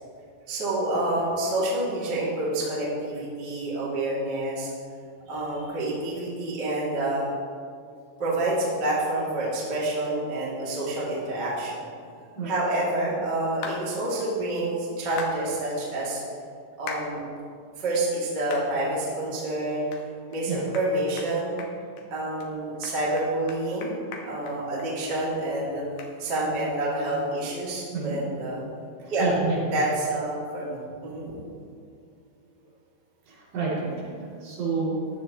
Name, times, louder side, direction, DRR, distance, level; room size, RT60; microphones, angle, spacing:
voice 1, 0.5-4.7 5.3-7.3 8.2-11.9 12.4-16.2 16.8-17.2 17.8-19.9 20.3-21.6 22.1-23.9 24.2-25.8 26.2-28.6 29.1-29.3 29.7-31.3, right 1 dB, 25° right, -7 dB, 2.6 m, -28 dB
sound 1, 13.6-13.8 15.2-15.4 16.9-17.1 17.6-17.7 18.5-18.7 19.1-19.2 19.9-20.0 20.3-20.4 20.7-20.9 21.2-21.3 21.6-22.0 22.4-22.5 22.8-25.2 25.5-25.6 26.0-26.1, left 5 dB, 75° left, 2.2 m, -38 dB
voice 2, 29.2-29.6 33.3-34.1 34.4-35.0, right 4 dB, 70° right, -7 dB, 5.3 m, -28 dB
16.5 x 11.0 x 3.1 m, 2.3 s
omnidirectional pair, 5.6 m